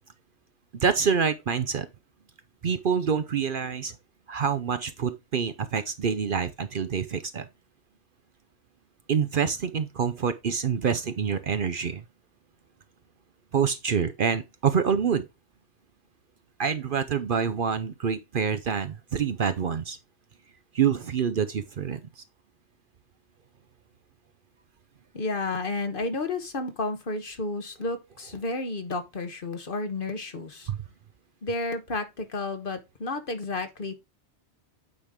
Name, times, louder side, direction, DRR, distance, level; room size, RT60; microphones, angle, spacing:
voice 1, 0.8-1.9 2.6-3.9 4.3-7.5 9.1-12.0 13.5-15.3 16.6-20.0 20.7-22.0 30.7-30.8, right 7 dB, 55° right, 0.8 m, -26 dB
voice 2, 25.1-30.7 31.4-33.9, left 3 dB, 50° left, 1.3 m, -31 dB
8.6 x 5.1 x 3.6 m
omnidirectional pair, 1.2 m